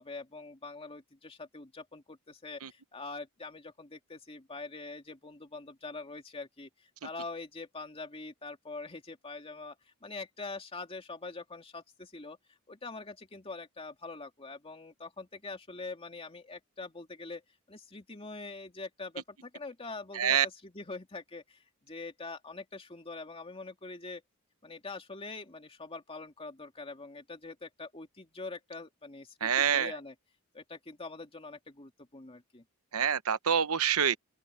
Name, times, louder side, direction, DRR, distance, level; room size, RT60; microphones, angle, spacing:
voice 1, 0.0-6.7 7.0-9.8 10.0-12.4 12.7-17.4 17.7-21.6 21.9-24.2 24.6-30.1 30.5-32.6, left 3 dB, 25° left, 2.6 m, -44 dB
voice 2, 20.1-20.5 29.4-29.9 32.9-34.2, right 8 dB, 70° right, 0.9 m, -26 dB
open air
head